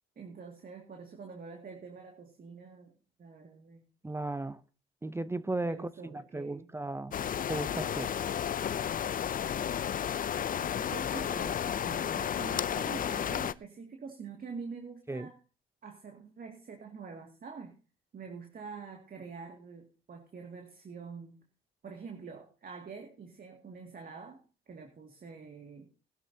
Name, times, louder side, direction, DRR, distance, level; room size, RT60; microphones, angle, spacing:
voice 1, 0.2-2.9 3.2-3.9 5.6-6.7 10.6-15.4 15.8-17.8 18.1-21.4 21.8-25.9, right 5 dB, 45° right, 2.3 m, -46 dB
voice 2, 4.0-4.6 5.0-7.2 7.5-8.1 15.1-15.3, right 2 dB, 15° right, 0.6 m, -36 dB
sound 1, 7.1-13.5, left 9 dB, 45° left, 0.6 m, -32 dB
19.0 x 12.0 x 2.8 m
cardioid pair, 90°, 20 cm